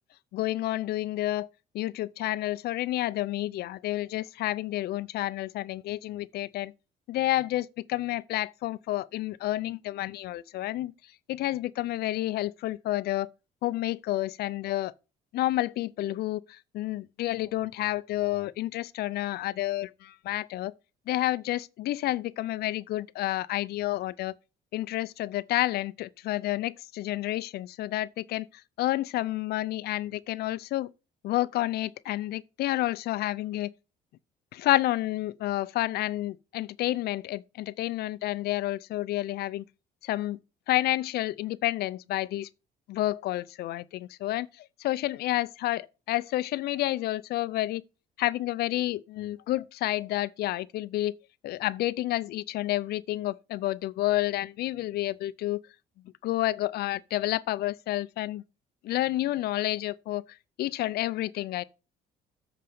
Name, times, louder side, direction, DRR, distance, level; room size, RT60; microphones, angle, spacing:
voice 1, 0.3-1.5 1.7-6.7 7.1-13.3 13.6-14.9 15.3-20.7 21.1-24.4 24.7-30.9 31.2-33.7 34.5-39.6 40.0-40.4 40.7-42.5 42.9-47.8 48.2-51.1 51.4-55.6 56.2-58.4 58.8-61.6, left 15 dB, 70° left, 0.5 m, -30 dB
7.8 x 5.0 x 6.8 m
cardioid pair, 110°, 17 cm